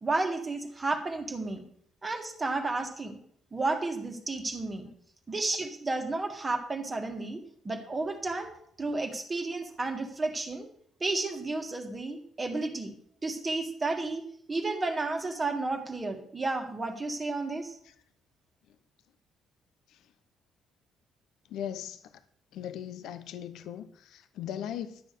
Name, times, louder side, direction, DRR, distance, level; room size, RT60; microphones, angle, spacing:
voice 1, 0.0-1.6 2.0-3.2 3.5-4.9 5.3-8.5 8.8-10.6 11.0-12.9 13.2-14.2 14.5-17.7, right 3 dB, 15° right, 4 dB, 1.7 m, -32 dB
voice 2, 21.5-22.2 22.5-25.0, left 10 dB, 70° left, 11 dB, 0.8 m, -39 dB
12.5 x 8.7 x 6.7 m, 0.65 s
cardioid pair, 165°, 0 cm